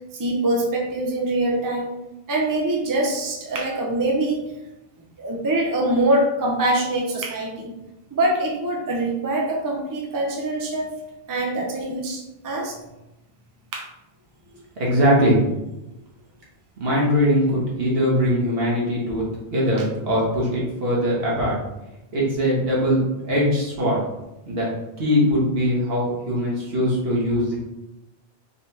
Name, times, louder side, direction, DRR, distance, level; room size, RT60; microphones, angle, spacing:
voice 1, 0.1-1.9 2.3-4.4 5.2-7.7 8.1-10.9 11.3-12.8 13.7-13.9, right 1 dB, 25° right, 0 dB, 0.5 m, -24 dB
voice 2, 14.8-15.4 16.8-21.6 22.1-23.0 23.2-24.0 24.5-24.7 25.0-27.6, equal, 70° right, -5 dB, 1.5 m, -21 dB
4.0 x 3.3 x 2.8 m, 0.94 s
omnidirectional pair, 1.0 m